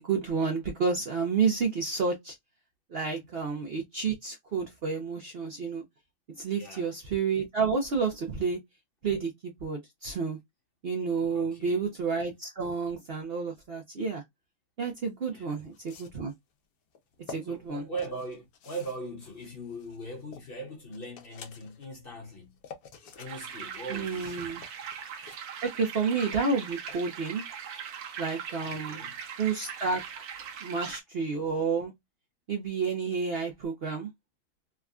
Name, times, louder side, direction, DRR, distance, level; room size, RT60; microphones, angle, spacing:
voice 1, 0.0-2.3 2.9-5.8 6.4-8.6 9.0-10.4 10.8-14.2 14.8-16.3 17.3-17.8 23.9-24.6 25.6-27.4 28.2-29.0 29.4-30.0 30.6-31.9 32.5-34.1, right 5 dB, 55° right, 0.7 m, -30 dB
voice 2, 6.6-6.9 11.3-11.8 15.3-15.6 17.4-22.6 23.2-24.5 28.6-29.2, right 2 dB, 45° left, 1.0 m, -40 dB
sound 1, 15.0-15.1 15.7-16.3 17.0-17.4 18.0-20.5 20.9-21.9 22.3-23.3 23.6-25.4, left 6 dB, 75° left, 1.2 m, -49 dB
sound 2, 23.3-31.0, right 7 dB, 80° right, 1.2 m, -40 dB
3.5 x 2.2 x 2.3 m
omnidirectional pair, 1.6 m